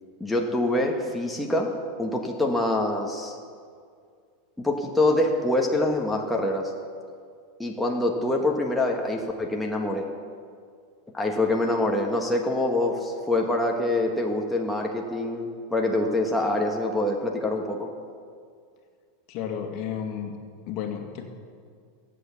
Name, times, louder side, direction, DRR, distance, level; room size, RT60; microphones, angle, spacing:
voice 1, 0.2-1.7 2.0-3.4 4.6-6.7 7.6-10.1 11.1-17.9, left 2 dB, 5° left, 0 dB, 1.4 m, -25 dB
voice 2, 19.3-20.3 20.7-21.3, left 8 dB, 50° left, 4 dB, 1.8 m, -32 dB
16.0 x 8.4 x 7.0 m, 2.2 s
supercardioid pair, 125°, 0 cm